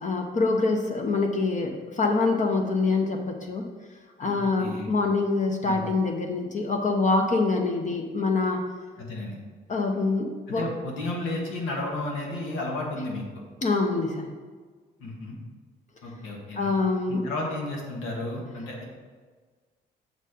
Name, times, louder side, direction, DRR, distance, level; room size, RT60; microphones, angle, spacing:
voice 1, 0.0-3.7 4.2-8.6 9.7-10.6 13.6-14.3 16.6-17.2, left 3 dB, 40° left, 2 dB, 0.8 m, -25 dB
voice 2, 4.2-5.0 5.6-5.8 9.0-9.4 10.5-13.4 15.0-15.4 16.0-16.7 17.1-18.8, left 2 dB, 90° left, -1 dB, 1.6 m, -33 dB
6.5 x 4.2 x 5.0 m, 1.5 s
cardioid pair, 90°, 20 cm